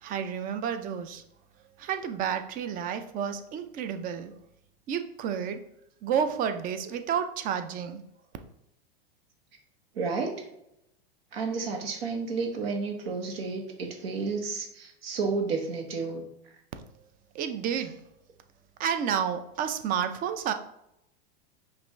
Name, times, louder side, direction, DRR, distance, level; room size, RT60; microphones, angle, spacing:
voice 1, 0.0-1.2 1.8-4.3 4.9-5.6 6.0-8.0 17.3-18.0 18.8-20.5, right 8 dB, 30° right, 8 dB, 0.5 m, -30 dB
voice 2, 9.9-10.3 11.3-16.3, right 4 dB, 80° right, 3 dB, 1.2 m, -31 dB
5.3 x 2.6 x 3.1 m, 0.81 s
hypercardioid pair, 125°, 30 cm